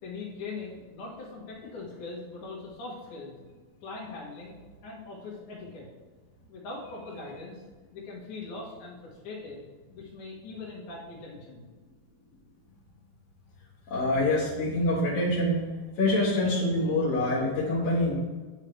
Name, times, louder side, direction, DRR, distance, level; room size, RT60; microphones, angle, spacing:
voice 1, 0.0-3.4 3.8-5.9 6.5-7.6 7.9-9.6 9.9-11.6, left 3 dB, 85° left, -5 dB, 3.0 m, -41 dB
voice 2, 13.9-15.6 16.0-18.1, left 1 dB, 60° left, -8 dB, 2.3 m, -25 dB
8.6 x 5.7 x 3.2 m, 1.4 s
omnidirectional pair, 3.5 m